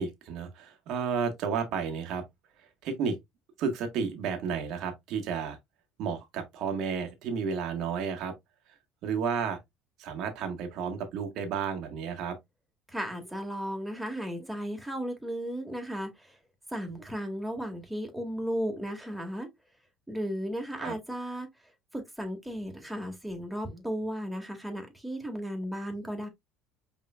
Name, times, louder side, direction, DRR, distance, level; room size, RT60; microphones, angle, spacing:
voice 1, 0.0-2.2 2.6-3.2 3.6-5.6 6.0-8.3 9.0-9.6 10.0-12.4 20.8-20.9, right 6 dB, 60° right, 1.5 m, -32 dB
voice 2, 12.9-16.4 16.7-19.5 20.1-21.5 21.9-26.3, equal, 5° right, 2.1 m, -35 dB
5.5 x 3.6 x 2.4 m
hypercardioid pair, 75°, 0 cm